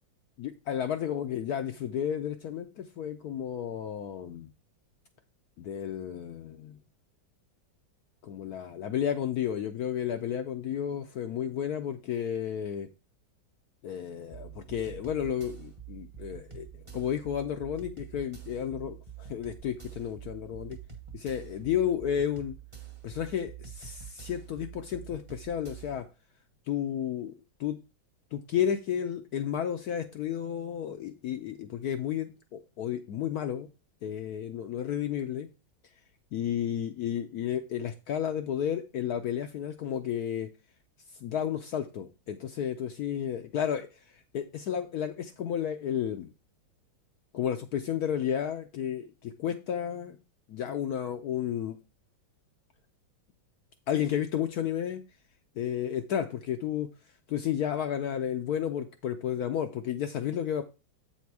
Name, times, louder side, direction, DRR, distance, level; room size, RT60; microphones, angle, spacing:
voice 1, 0.4-4.5 5.6-6.8 8.2-12.9 13.8-20.8 21.1-22.6 23.0-26.1 26.7-27.3 27.6-27.8 28.3-33.7 34.0-35.5 36.3-40.5 41.2-43.9 44.3-46.3 47.3-50.2 50.5-51.8 53.9-55.0 55.6-56.9 57.3-60.6, left 9 dB, 75° left, 7 dB, 0.9 m, -32 dB
sound 1, 14.3-26.0, right 9 dB, 25° right, 0.7 m, -46 dB
8.2 x 4.3 x 4.7 m, 0.30 s
omnidirectional pair, 2.2 m